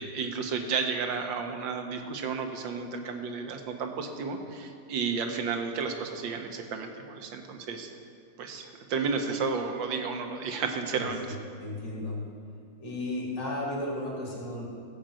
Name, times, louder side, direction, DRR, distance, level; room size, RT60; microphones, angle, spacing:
voice 1, 0.0-7.9 8.4-11.2, right 5 dB, 85° right, 5 dB, 1.7 m, -32 dB
voice 2, 10.9-12.2 12.8-14.6, left 1 dB, 75° left, -3 dB, 3.0 m, -34 dB
14.5 x 5.2 x 7.5 m, 2.3 s
omnidirectional pair, 2.0 m